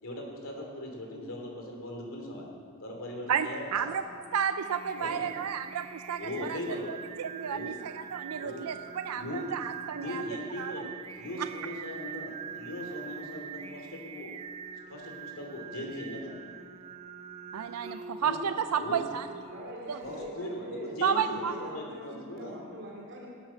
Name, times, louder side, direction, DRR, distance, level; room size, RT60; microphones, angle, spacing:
voice 1, 0.0-2.5 2.8-3.9 5.0-5.2 6.2-7.0 7.5-7.8 8.3-8.7 9.0-9.4 10.0-14.3 14.9-16.4 18.2-18.4 18.8-19.0 20.0-22.5, left 1 dB, 65° left, 0 dB, 2.9 m, -39 dB
voice 2, 3.3-4.0 4.3-6.6 6.9-10.2 10.6-10.7 11.4-11.5 17.5-19.3 19.9-20.0 21.0-21.5, right 7 dB, 85° right, 9 dB, 0.4 m, -32 dB
Singing, 4.1-20.3, right 7 dB, 30° right, 0.5 m, -44 dB
voice 3, 19.5-23.3, equal, 55° right, -3 dB, 2.6 m, -43 dB
18.5 x 8.9 x 5.8 m, 2.2 s
head